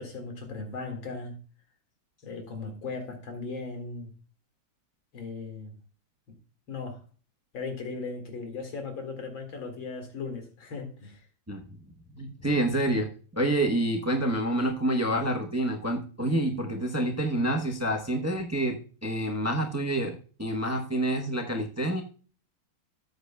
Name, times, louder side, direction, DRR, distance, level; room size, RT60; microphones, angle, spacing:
voice 1, 0.0-1.4 2.2-4.1 5.1-5.7 6.7-7.0 7.5-11.3, left 4 dB, 75° left, 2.8 m, -37 dB
voice 2, 12.2-22.0, right 1 dB, 20° right, 0.4 m, -28 dB
13.5 x 7.9 x 2.2 m
omnidirectional pair, 2.2 m